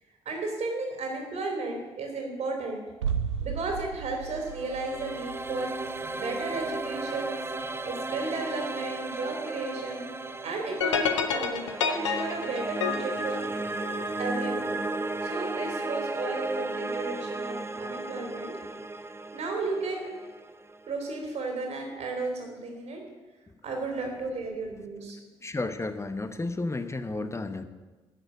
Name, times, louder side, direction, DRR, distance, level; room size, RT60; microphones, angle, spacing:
voice 1, 0.2-2.8 3.4-7.4 7.8-10.1 10.4-13.4 14.2-14.8 15.2-18.6 19.3-20.1 20.9-23.0 23.6-25.2, right 3 dB, 55° right, 1 dB, 3.3 m, -34 dB
sound 1, 3.0-8.7 9.0-9.1, right 7 dB, 80° right, 0.4 m, -36 dB
sound 2, 4.2-21.2, right 2 dB, 15° right, 0.8 m, -35 dB
sound 3, 10.8-14.2, left 6 dB, 80° left, 0.7 m, -29 dB
voice 2, 25.4-27.6, left 2 dB, 20° left, 9 dB, 1.0 m, -32 dB
11.0 x 6.6 x 7.9 m, 1.2 s
figure-of-eight pair, 40°, 15 cm